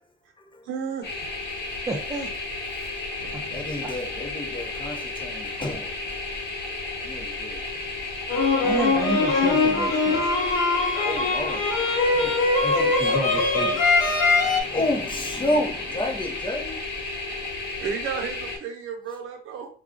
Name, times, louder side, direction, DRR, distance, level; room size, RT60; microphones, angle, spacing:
voice 1, 0.6-1.1 2.9-3.8 17.8-19.7, right 7 dB, 80° right, 0.8 m, -33 dB
sound 1, 1.0-18.6, left 3 dB, 60° left, 1.3 m, -33 dB
voice 2, 1.9-2.3 3.3-3.4 3.8-3.9 8.6-10.3 12.6-13.8, right 1 dB, 15° right, 0.6 m, -31 dB
voice 3, 3.5-6.0 7.0-7.6 9.0-9.1 11.0-11.7 12.1-13.2 14.0-16.9, left 1 dB, 25° left, 0.7 m, -31 dB
sound 2, 8.3-14.6, left 3 dB, 85° left, 0.7 m, -22 dB
2.3 x 2.3 x 3.7 m
cardioid pair, 90°, 20 cm